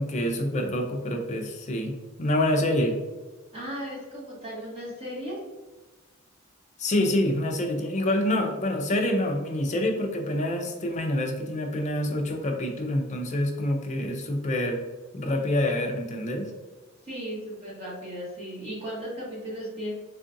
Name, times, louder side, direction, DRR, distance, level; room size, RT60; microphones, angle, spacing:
voice 1, 0.0-3.0 6.8-14.8 15.1-16.5, left 1 dB, 35° left, 3 dB, 0.4 m, -27 dB
voice 2, 3.5-5.3 17.0-19.9, equal, 30° right, -7 dB, 1.3 m, -36 dB
3.7 x 2.4 x 2.5 m, 1.2 s
head